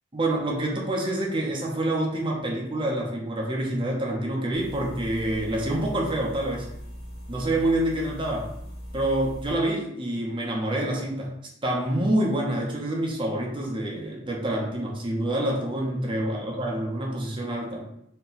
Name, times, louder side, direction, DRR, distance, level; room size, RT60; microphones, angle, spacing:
voice 1, 0.1-6.7 7.3-8.5 8.9-11.3 11.6-17.9, right 1 dB, 25° right, -1 dB, 0.6 m, -27 dB
sound 1, 4.5-9.5, equal, 45° left, 1.2 m, -40 dB
4.2 x 2.2 x 3.9 m, 0.76 s
head